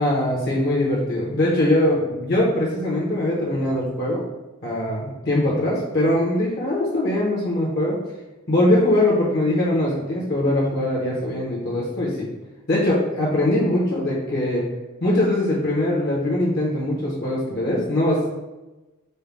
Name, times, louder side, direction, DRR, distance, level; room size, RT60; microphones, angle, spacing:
voice 1, 0.0-4.2 4.6-8.0 8.5-12.3 12.7-14.7 15.0-18.3, left 1 dB, 45° left, -4 dB, 0.9 m, -22 dB
5.4 x 2.2 x 3.4 m, 1.1 s
head